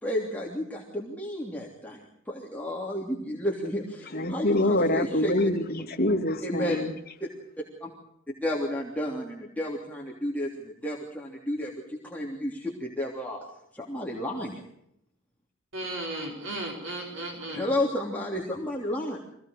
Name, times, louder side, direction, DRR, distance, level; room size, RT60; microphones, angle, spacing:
voice 1, 0.0-5.3 6.4-6.8 7.2-7.3 7.8-7.9 8.4-13.4 13.7-14.6 17.5-19.2, left 1 dB, 10° left, -3 dB, 3.2 m, -32 dB
voice 2, 4.1-6.9, left 1 dB, 50° left, 3 dB, 2.6 m, -25 dB
voice 3, 15.7-17.7, right 1 dB, 70° right, 1 dB, 4.7 m, -35 dB
25.0 x 17.5 x 6.5 m, 0.76 s
head